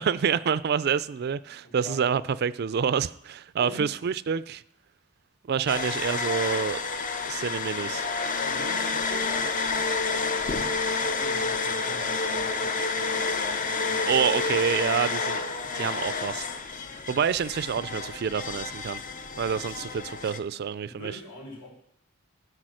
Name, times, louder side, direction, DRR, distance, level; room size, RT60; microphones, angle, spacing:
voice 1, 0.0-4.6 5.4-6.8 7.2-8.0 14.0-15.4 15.7-16.5 17.1-19.0 19.4-21.1, right 7 dB, 50° right, 0.3 m, -27 dB
voice 2, 1.6-2.3 3.6-3.9 5.6-5.8 8.4-14.3 16.9-17.1 20.8-21.7, left 2 dB, 85° left, 4.6 m, -44 dB
sound 1, 5.7-20.4, left 4 dB, 40° left, 0.6 m, -29 dB
13.0 x 4.9 x 6.3 m
head